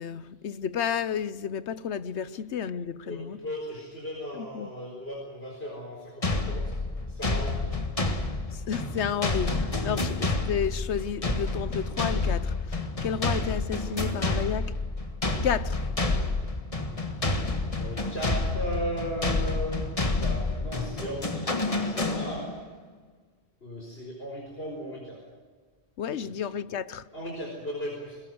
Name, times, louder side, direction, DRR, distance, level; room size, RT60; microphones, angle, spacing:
voice 1, 0.0-3.4 4.4-4.7 8.5-14.7 15.4-15.9 26.0-27.1, left 8 dB, 90° left, 1.1 m, -31 dB
voice 2, 3.0-6.7 7.1-7.7 9.8-10.0 17.8-19.8 20.1-22.5 23.6-25.2 26.1-26.4 27.1-28.2, equal, 65° left, 4.8 m, -37 dB
sound 1, 6.2-22.7, left 2 dB, 30° left, 1.7 m, -29 dB
21.5 x 21.0 x 7.8 m
omnidirectional pair, 1.1 m